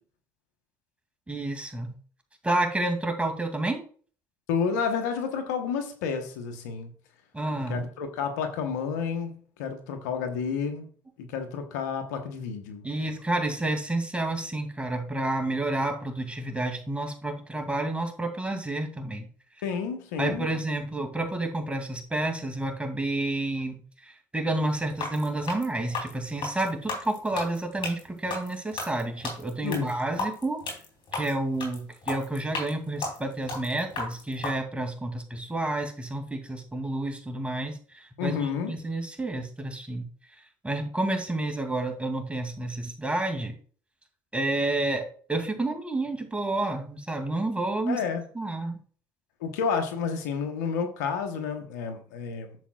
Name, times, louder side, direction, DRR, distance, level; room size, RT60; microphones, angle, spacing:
voice 1, 1.3-1.9 2.4-3.8 7.3-7.8 12.8-19.3 20.2-30.6 31.1-40.0 40.6-43.6 44.3-48.0 48.3-48.8, right 2 dB, 15° right, 2.5 m, -30 dB
voice 2, 4.5-6.9 7.5-10.9 11.2-12.8 19.6-20.5 29.6-30.2 38.2-38.7 47.9-48.2 49.4-52.6, left 6 dB, 90° left, 1.2 m, -30 dB
sound 1, 24.9-34.5, left 3 dB, 60° left, 3.6 m, -34 dB
10.5 x 7.1 x 2.4 m
hypercardioid pair, 65°, 9 cm